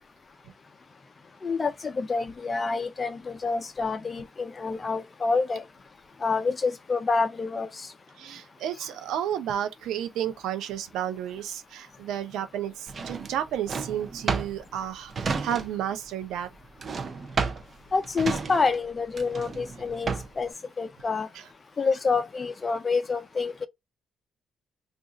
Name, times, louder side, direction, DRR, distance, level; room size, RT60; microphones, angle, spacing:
voice 1, 1.4-5.6 6.2-7.7 17.9-20.5 20.8-21.3 21.8-23.7, left 4 dB, 35° left, 0.5 m, -27 dB
voice 2, 8.2-16.5 21.3-21.5, right 10 dB, 85° right, 0.6 m, -32 dB
Drawer open or close, 12.9-16.0 16.2-20.5, right 5 dB, 45° right, 0.6 m, -32 dB
2.5 x 2.4 x 3.8 m
cardioid pair, 90°, 0 cm